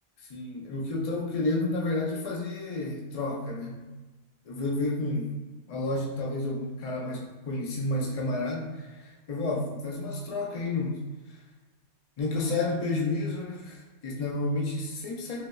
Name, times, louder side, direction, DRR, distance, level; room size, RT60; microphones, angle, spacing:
voice 1, 0.2-3.8 4.5-5.4 5.7-11.0 11.3-11.4 12.2-15.5, left 2 dB, 70° left, -2 dB, 0.3 m, -31 dB
3.0 x 2.6 x 2.3 m, 1.2 s
omnidirectional pair, 1.2 m